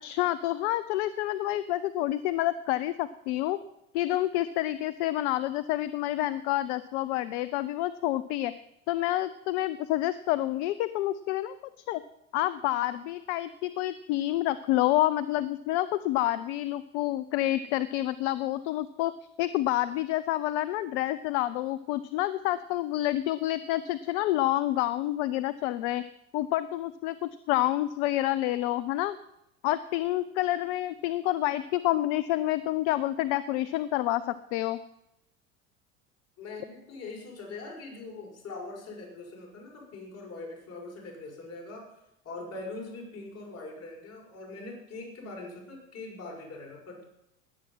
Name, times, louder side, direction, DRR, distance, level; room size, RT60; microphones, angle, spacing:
voice 1, 0.0-3.6 3.9-8.5 8.9-11.5 11.9-12.0 12.3-19.1 19.4-26.0 26.3-29.2 29.6-34.8, left 15 dB, 55° left, 16 dB, 0.7 m, -28 dB
voice 2, 36.4-42.0 42.2-47.0, left 3 dB, 40° left, -1 dB, 6.3 m, -42 dB
20.0 x 8.7 x 5.7 m, 0.84 s
figure-of-eight pair, 75°, 41 cm